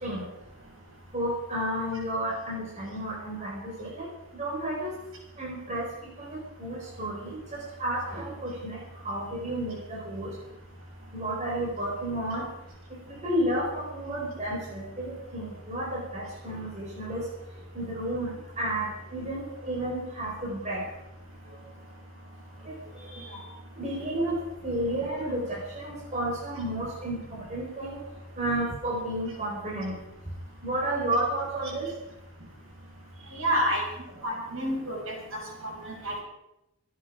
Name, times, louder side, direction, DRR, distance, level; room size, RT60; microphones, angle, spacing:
voice 1, 1.1-4.1 4.3-4.9 5.4-7.4 7.8-8.8 9.0-10.3 11.1-12.4 13.2-17.2 17.7-20.8 22.6-22.7 23.0-23.3 23.8-28.0 28.4-29.9 30.6-31.9, right 1 dB, 30° right, -4 dB, 4.8 m, -31 dB
voice 2, 33.3-33.8 34.2-35.1 35.6-36.2, equal, 65° right, -1 dB, 6.8 m, -29 dB
26.0 x 9.7 x 5.0 m, 0.87 s
head